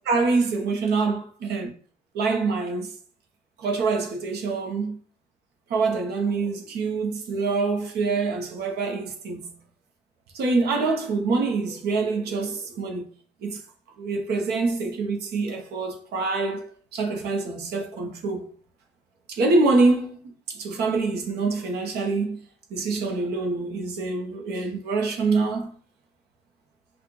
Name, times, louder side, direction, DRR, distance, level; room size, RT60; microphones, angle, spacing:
voice 1, 0.0-1.7 2.1-2.9 3.6-5.0 5.7-9.5 10.3-13.0 13.4-13.6 14.0-18.5 19.3-22.4 22.7-25.8, right 3 dB, 75° right, 1.0 m, -25 dB
5.9 x 2.5 x 3.1 m
cardioid pair, 110°, 17 cm